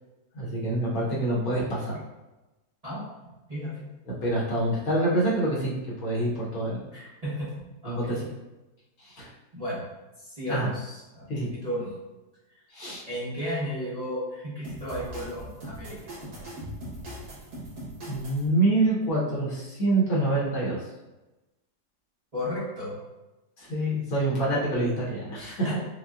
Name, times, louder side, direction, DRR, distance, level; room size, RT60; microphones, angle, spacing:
voice 1, 0.3-2.0 4.1-5.7 6.0-6.9 7.8-8.2 9.0-9.3 10.5-10.7 11.3-11.5 12.7-13.0 18.1-20.8 23.6-25.8, right 2 dB, 60° left, -5 dB, 1.4 m, -26 dB
voice 2, 2.8-3.9 6.9-8.2 9.5-9.9 10.2-11.3 11.6-11.9 12.5-12.6 13.1-16.0 22.3-22.9 25.5-25.8, equal, 30° right, -10 dB, 0.8 m, -34 dB
sound 1, 14.6-18.5, equal, 70° right, 1.9 m, -40 dB
5.4 x 2.2 x 2.4 m, 1.0 s
omnidirectional pair, 1.7 m